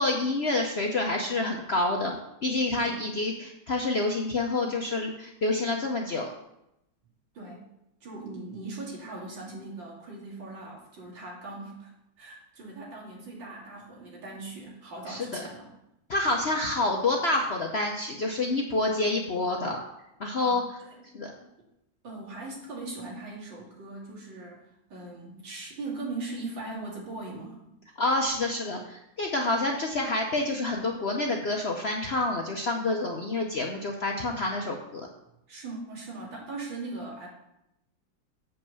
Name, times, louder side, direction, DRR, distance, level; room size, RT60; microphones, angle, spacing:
voice 1, 0.0-6.3 15.1-15.4 16.1-19.8 20.2-20.6 21.1-21.3 28.0-35.1, left 2 dB, 55° left, 1 dB, 0.7 m, -28 dB
voice 2, 2.8-3.1 7.3-7.7 8.0-11.9 12.2-15.7 20.4-21.1 22.0-27.6 35.5-37.3, right 3 dB, 80° right, -3 dB, 3.2 m, -40 dB
7.4 x 5.6 x 6.8 m, 0.84 s
omnidirectional pair, 2.0 m